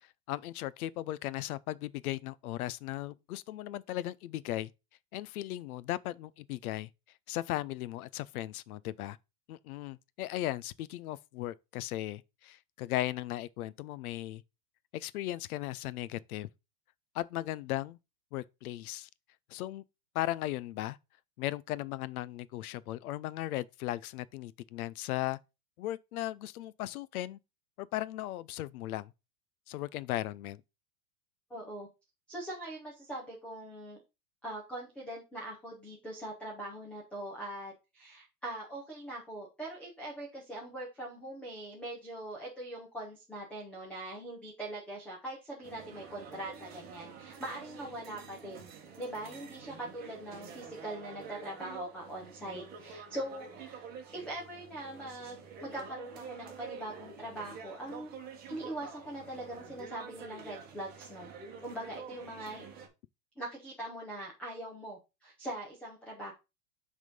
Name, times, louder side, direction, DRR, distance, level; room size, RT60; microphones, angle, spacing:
voice 1, 0.3-4.7 5.1-6.9 7.3-9.2 9.5-14.4 14.9-16.5 17.1-18.0 18.3-19.1 19.5-19.8 20.1-21.0 21.4-25.4 25.8-27.4 27.8-29.1 29.7-30.6, left 15 dB, 70° left, 0.6 m, -37 dB
voice 2, 31.5-31.9 32.3-34.0 34.4-53.8 54.1-58.1 58.5-61.3 61.6-62.7 63.4-66.3, right 1 dB, 5° left, 0.5 m, -42 dB
sound 1, 45.6-62.9, right 6 dB, 20° right, 1.2 m, -48 dB
6.4 x 3.6 x 5.2 m
supercardioid pair, 165°, 46 cm